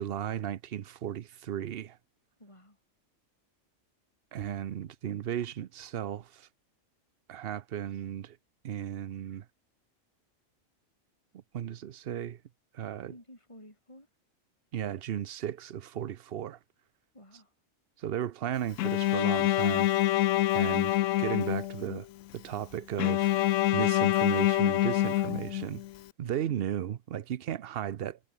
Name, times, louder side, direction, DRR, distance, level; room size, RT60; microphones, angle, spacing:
voice 1, 0.0-2.0 4.3-6.5 7.3-8.4 8.6-9.5 11.5-12.4 12.7-13.1 14.7-16.6 18.0-19.9 20.5-22.1 22.3-23.3 23.7-25.8 26.2-28.2, right 10 dB, 55° right, 0.8 m, -35 dB
voice 2, 2.4-2.8 13.1-14.1 17.1-17.6 26.2-26.7, left 1 dB, 20° left, 7.0 m, -53 dB
Bowed string instrument, 18.8-22.0 23.0-25.9, left 14 dB, 75° left, 0.9 m, -26 dB
omnidirectional pair, 1.4 m